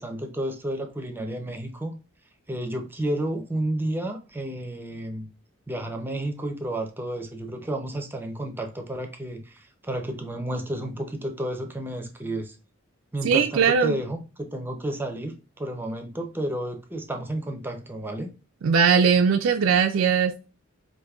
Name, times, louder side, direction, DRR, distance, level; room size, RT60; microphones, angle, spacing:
voice 1, 0.0-2.0 2.5-5.3 5.7-12.6 13.1-18.3, right 1 dB, 10° right, 0.5 m, -31 dB
voice 2, 13.2-14.0 18.6-20.3, right 6 dB, 65° right, 0.3 m, -20 dB
5.0 x 2.6 x 2.3 m
head